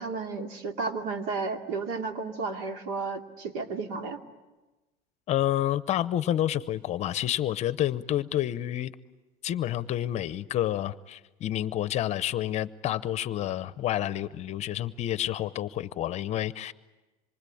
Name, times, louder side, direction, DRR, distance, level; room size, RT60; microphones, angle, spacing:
voice 1, 0.0-4.2, right 4 dB, 70° right, 5 dB, 2.7 m, -33 dB
voice 2, 5.3-8.9 9.4-16.7, left 12 dB, 40° left, 15 dB, 0.8 m, -29 dB
26.5 x 24.0 x 8.6 m, 1.1 s
cardioid pair, 140°, 18 cm